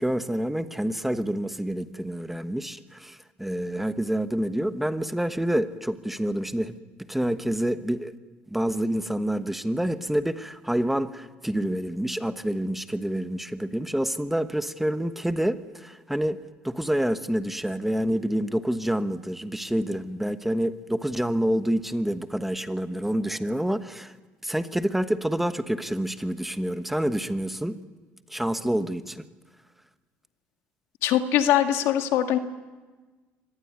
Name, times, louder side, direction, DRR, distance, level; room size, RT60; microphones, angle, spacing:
voice 1, 0.0-6.8 7.1-8.1 8.5-16.4 16.6-24.1 24.4-27.8 28.3-29.2, right 1 dB, 5° right, 10 dB, 1.2 m, -27 dB
voice 2, 31.0-32.4, left 11 dB, 75° left, 6 dB, 2.0 m, -22 dB
24.5 x 19.0 x 9.6 m, 1.3 s
supercardioid pair, 95°, 5 cm